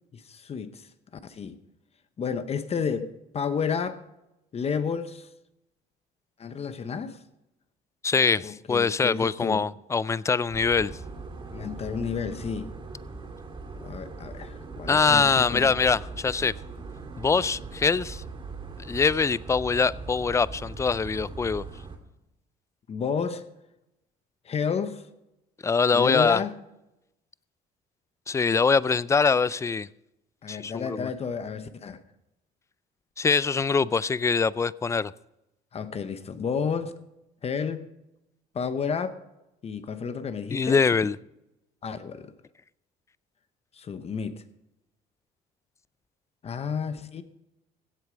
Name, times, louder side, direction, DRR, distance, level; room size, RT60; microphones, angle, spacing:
voice 1, 0.1-0.9 1.2-1.6 2.2-4.0 4.5-5.3 6.4-7.2 8.4-9.6 11.5-12.7 13.8-15.8 22.9-23.4 24.4-25.1 25.9-26.5 30.4-32.0 35.7-36.9 37.4-37.9 38.5-39.2 39.6-40.8 41.8-42.3 43.7-44.4 46.4-47.2, left 6 dB, 35° left, 0.9 m, -31 dB
voice 2, 8.0-10.9 14.9-16.5 17.2-18.2 18.8-21.6 25.6-26.4 28.3-29.9 30.5-31.1 33.2-35.1 40.5-41.2, left 5 dB, 15° left, 0.3 m, -23 dB
sound 1, 10.5-22.0, right 3 dB, 30° right, 3.1 m, -40 dB
16.5 x 8.1 x 5.1 m
cardioid pair, 110°, 17 cm